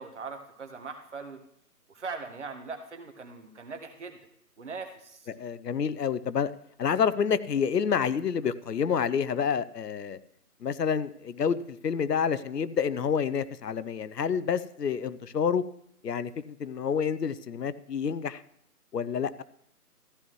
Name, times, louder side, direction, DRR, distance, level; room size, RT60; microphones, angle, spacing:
voice 1, 0.0-1.4 1.9-4.2 4.6-5.3, right 4 dB, 45° right, 1.5 m, -40 dB
voice 2, 5.3-6.5 6.8-10.2 10.6-15.6 16.0-18.4 18.9-19.4, left 7 dB, 80° left, 0.8 m, -28 dB
14.5 x 11.0 x 3.1 m
figure-of-eight pair, 165°, 47 cm